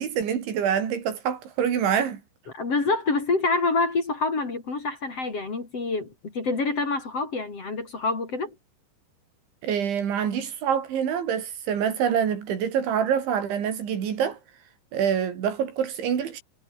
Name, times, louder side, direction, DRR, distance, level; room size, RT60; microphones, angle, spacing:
voice 1, 0.0-2.2 9.6-14.4 14.9-16.4, right 8 dB, 75° right, 5.8 m, -26 dB
voice 2, 2.5-8.6, left 3 dB, 35° left, 4.4 m, -26 dB
omnidirectional pair, 5.4 m